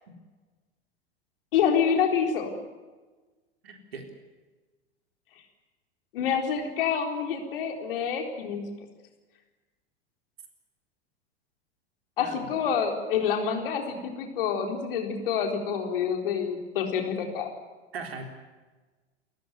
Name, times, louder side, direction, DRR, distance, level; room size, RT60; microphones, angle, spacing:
voice 1, 1.5-2.5 6.1-8.7 12.2-17.5, left 7 dB, 55° left, 3 dB, 4.2 m, -27 dB
voice 2, 3.6-4.0 12.2-12.5 17.9-18.2, right 4 dB, 65° right, 4 dB, 4.1 m, -39 dB
28.5 x 14.5 x 9.4 m, 1.3 s
figure-of-eight pair, 90°, 32 cm